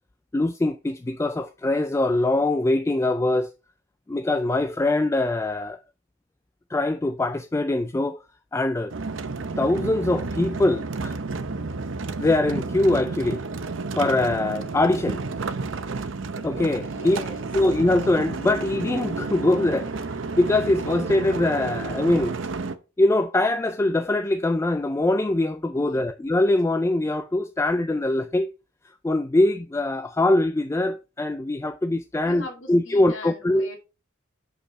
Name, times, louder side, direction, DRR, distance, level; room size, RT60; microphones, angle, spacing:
voice 1, 0.3-3.5 4.1-5.8 6.7-8.2 8.5-8.9 9.6-11.2 12.2-13.4 14.0-15.2 16.4-17.2 17.5-22.4 23.0-28.5 29.0-33.7, left 2 dB, 15° left, 0.3 m, -23 dB
sound 1, 8.9-22.7, right 3 dB, 65° right, 0.7 m, -31 dB
voice 2, 16.8-17.5 25.7-26.0 32.2-33.8, left 2 dB, 70° left, 2.5 m, -40 dB
6.6 x 5.4 x 4.1 m
head